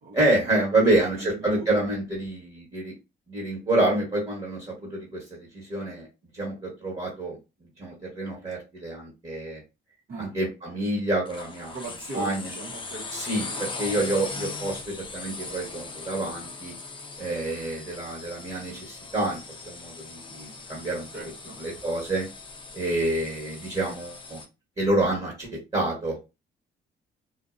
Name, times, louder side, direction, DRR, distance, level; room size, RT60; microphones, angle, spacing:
voice 1, 0.1-2.9 3.3-6.1 6.3-7.4 7.8-9.6 10.2-11.7 12.1-12.5 13.1-16.7 17.2-19.4 19.6-21.1 21.6-22.3 22.7-24.4 24.8-26.2, right 2 dB, 30° right, -3 dB, 1.2 m, -27 dB
voice 2, 0.7-1.7 10.1-10.4 11.7-13.1 13.5-13.6 21.1-21.6, right 2 dB, 50° right, -4 dB, 0.8 m, -39 dB
sound 1, 11.2-24.5, left 3 dB, 25° left, 0.5 m, -39 dB
2.5 x 2.1 x 2.4 m, 0.26 s
cardioid pair, 90°, 20 cm